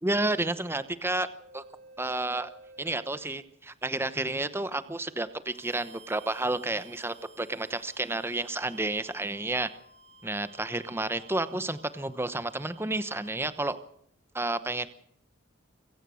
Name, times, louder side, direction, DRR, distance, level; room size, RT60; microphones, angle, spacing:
voice 1, 0.0-1.3 1.5-1.6 2.0-2.5 2.8-9.7 10.2-13.8 14.3-14.9, right 2 dB, 10° right, 12 dB, 0.9 m, -31 dB
sound 1, 1.4-3.5 5.3-13.4, right 4 dB, 30° right, 3.9 m, -54 dB
26.0 x 16.5 x 6.4 m, 0.70 s
head